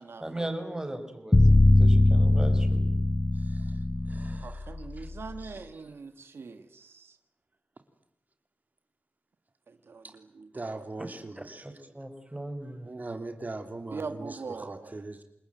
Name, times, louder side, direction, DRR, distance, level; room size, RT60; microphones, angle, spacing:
voice 1, 0.2-2.9 11.4-12.9, right 1 dB, 15° right, 7 dB, 5.4 m, -38 dB
sound 1, 1.3-5.4, left 2 dB, 25° left, 1.3 m, -21 dB
voice 2, 3.3-5.1 5.4-5.9 10.0-10.2 10.5-11.7 12.8-15.2, right 2 dB, 45° right, 6 dB, 3.0 m, -41 dB
voice 3, 4.4-7.2 9.7-10.8 13.9-14.9, right 4 dB, 85° right, 9 dB, 1.6 m, -42 dB
29.0 x 21.0 x 9.2 m, 0.77 s
wide cardioid pair, 60°, 4 cm